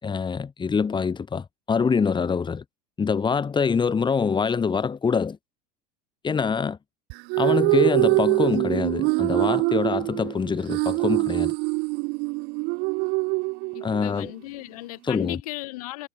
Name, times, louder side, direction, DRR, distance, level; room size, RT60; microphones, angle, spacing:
voice 1, 0.0-2.6 3.0-5.4 6.2-6.8 7.4-11.5 13.8-14.3 15.1-15.4, left 5 dB, 20° left, 7.5 m, -25 dB
sound 1, 7.1-14.1, right 28 dB, 50° right, 1.7 m, -24 dB
voice 2, 13.7-16.1, left 19 dB, 60° left, 7.7 m, -36 dB
figure-of-eight pair, 75°, 21 cm